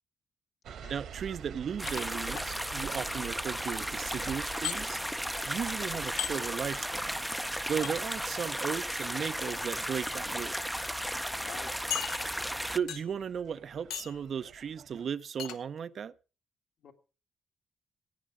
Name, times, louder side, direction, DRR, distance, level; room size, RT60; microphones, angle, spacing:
sound 1, 0.6-15.1, right 8 dB, 70° right, 1.4 m, -48 dB
voice 1, 0.9-5.0 5.4-7.2 7.7-10.6 12.7-16.1, right 7 dB, 55° right, 0.6 m, -36 dB
sound 2, 1.8-12.8, equal, ahead, 0.5 m, -35 dB
sound 3, 1.9-2.5 4.6-4.8 6.2-6.4 7.8-7.9 9.3-9.6 10.3-10.4 10.8-10.9 11.9-12.5 12.9-13.2 13.9-14.2 15.4-15.6, left 10 dB, 85° left, 1.2 m, -37 dB
voice 2, 11.4-12.0 16.8-16.9, left 6 dB, 65° left, 2.3 m, -48 dB
16.5 x 9.3 x 4.9 m
cardioid pair, 90°, 0 cm